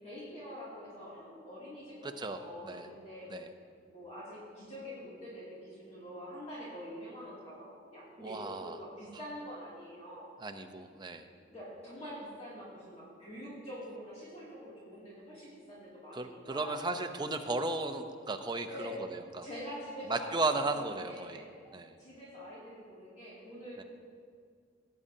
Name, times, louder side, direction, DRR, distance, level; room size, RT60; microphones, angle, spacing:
voice 1, 0.0-3.3 3.9-10.3 11.5-16.8 18.7-19.0 19.4-20.4 20.7-21.5 22.0-23.8, equal, 35° left, -9 dB, 2.5 m, -45 dB
voice 2, 2.0-2.9 3.3-3.5 8.2-8.8 10.4-11.3 16.1-19.5 20.1-21.4 21.7-21.9 23.8-23.9, right 3 dB, 25° right, 6 dB, 0.6 m, -35 dB
17.5 x 8.6 x 2.7 m, 2.1 s
head